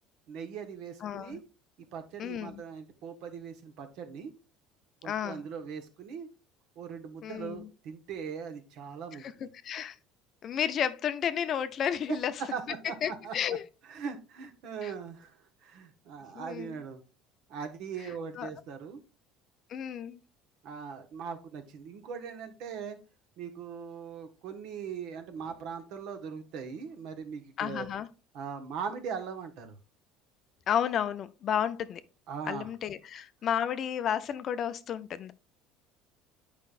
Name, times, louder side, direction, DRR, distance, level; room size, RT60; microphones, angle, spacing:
voice 1, 0.3-1.4 1.9-4.3 5.0-6.3 6.8-9.2 12.1-12.2 12.5-13.3 13.9-17.0 17.5-19.0 20.6-23.0 23.4-27.9 28.3-29.8 32.3-32.7, right 6 dB, 65° right, 1.2 m, -40 dB
voice 2, 1.0-1.4 2.2-2.6 5.0-5.4 7.2-7.7 9.2-9.3 9.6-10.0 10.4-12.3 13.0-13.6 14.8-14.9 16.4-16.8 18.4-18.5 19.7-20.2 27.6-28.1 30.7-32.0 32.5-35.3, left 9 dB, 40° left, 0.4 m, -32 dB
8.7 x 5.1 x 2.4 m
cardioid pair, 145°, 0 cm